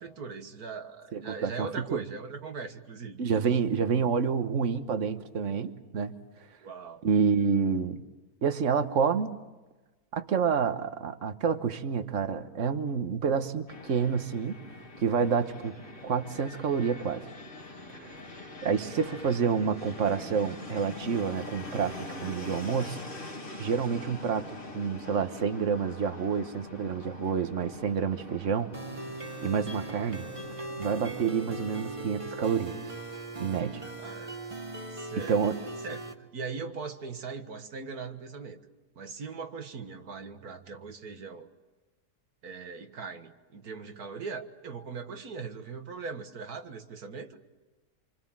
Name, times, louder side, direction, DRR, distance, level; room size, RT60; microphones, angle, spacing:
voice 1, 0.0-3.2 6.6-7.0 33.6-34.3 34.9-35.4 35.8-38.6 39.0-41.5 42.4-47.4, right 5 dB, 75° right, 7 dB, 2.0 m, -40 dB
voice 2, 1.1-2.0 3.2-6.2 7.0-8.0 8.4-9.3 10.1-14.6 15.0-15.7 16.0-17.2 17.9-18.1 18.6-23.0 23.6-28.7 29.4-30.2 30.8-32.8 33.4-33.8 35.3-35.6, right 6 dB, 55° right, 10 dB, 1.5 m, -28 dB
Fixed-wing aircraft airplane, 13.7-31.7, left 2 dB, 35° left, 2.4 m, -44 dB
sound 1, 28.7-36.1, right 2 dB, 20° right, 1.5 m, -39 dB
27.5 x 25.5 x 7.5 m, 1.2 s
omnidirectional pair, 1.6 m